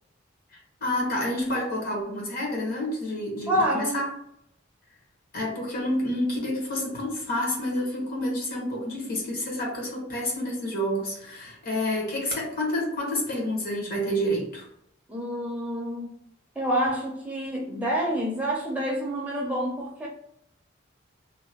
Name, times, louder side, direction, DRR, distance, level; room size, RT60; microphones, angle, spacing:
voice 1, 0.8-4.1 5.3-14.6, left 1 dB, 50° left, -2 dB, 1.1 m, -29 dB
voice 2, 3.5-4.1 15.1-16.1 16.6-20.1, equal, 5° right, -3 dB, 0.4 m, -28 dB
2.8 x 2.1 x 2.8 m, 0.75 s
head